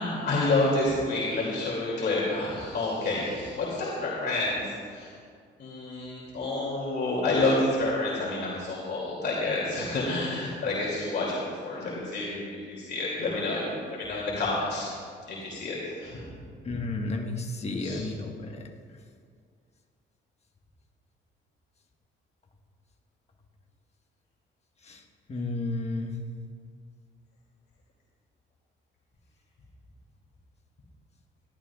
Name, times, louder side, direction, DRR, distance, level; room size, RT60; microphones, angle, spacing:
voice 1, 0.0-5.1 5.6-13.6 13.9-14.9 15.3-16.2 17.8-18.1, left 2 dB, 55° left, -5 dB, 2.5 m, -29 dB
voice 2, 16.6-18.7 24.9-25.0 25.3-26.1, left 2 dB, 35° left, 2 dB, 1.4 m, -32 dB
18.0 x 12.0 x 2.4 m, 2.1 s
cardioid pair, 90°, 20 cm